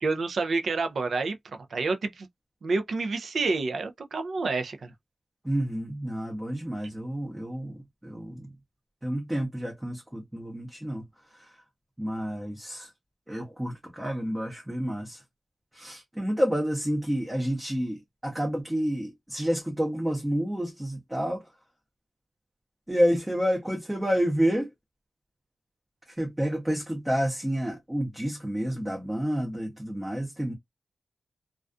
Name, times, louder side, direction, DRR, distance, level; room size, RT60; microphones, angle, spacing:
voice 1, 0.0-2.3 2.6-4.9, right 3 dB, 70° right, 0.4 m, -29 dB
voice 2, 5.4-8.5 9.0-11.0 12.0-12.9 13.3-15.2 15.7-21.4 22.9-24.7 26.2-30.5, equal, 10° right, 0.6 m, -29 dB
2.3 x 2.3 x 2.3 m
wide cardioid pair, 145°, 0 cm